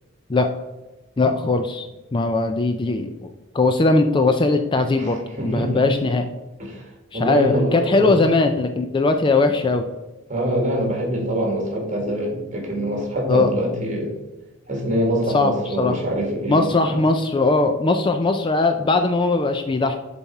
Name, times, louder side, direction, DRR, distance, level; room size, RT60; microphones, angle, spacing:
voice 1, 1.2-3.3 3.5-6.3 7.1-9.9 13.3-13.5 15.3-16.0 16.5-20.0, left 3 dB, 25° left, 7 dB, 0.4 m, -20 dB
voice 2, 5.0-5.8 6.6-6.8 7.1-8.2 10.3-14.2 14.7-17.0, equal, 35° right, 0 dB, 1.9 m, -24 dB
7.1 x 4.2 x 4.6 m, 1.1 s
head